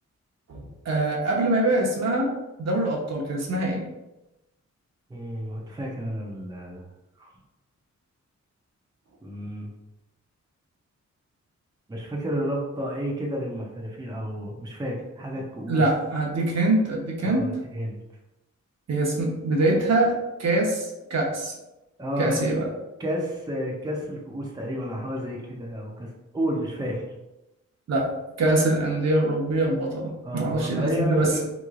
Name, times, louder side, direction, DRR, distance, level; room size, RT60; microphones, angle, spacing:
voice 1, 0.5-2.3 2.6-3.9 15.7-17.4 18.9-21.5 22.2-22.7 27.9-28.0 28.4-31.4, right 2 dB, 60° right, -2 dB, 0.9 m, -24 dB
voice 2, 5.1-6.8 7.2-7.3 9.2-9.7 11.9-15.8 17.2-18.0 22.0-22.5 23.0-27.0 30.2-31.4, equal, 15° right, -2 dB, 0.6 m, -31 dB
3.7 x 3.0 x 2.4 m, 0.98 s
wide cardioid pair, 115°, 29 cm